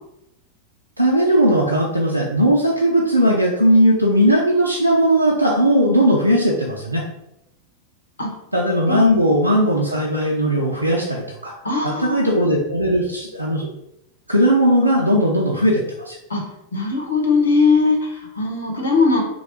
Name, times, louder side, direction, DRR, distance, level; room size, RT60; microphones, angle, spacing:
voice 1, 1.0-7.0 8.5-11.5 11.8-13.7 14.3-16.2, equal, 85° right, -3 dB, 0.5 m, -17 dB
voice 2, 8.9-9.3 11.6-12.2 16.3-16.4 16.7-19.2, left 4 dB, 70° left, -1 dB, 1.0 m, -20 dB
3.2 x 2.3 x 4.4 m, 0.86 s
figure-of-eight pair, 90°, 0 cm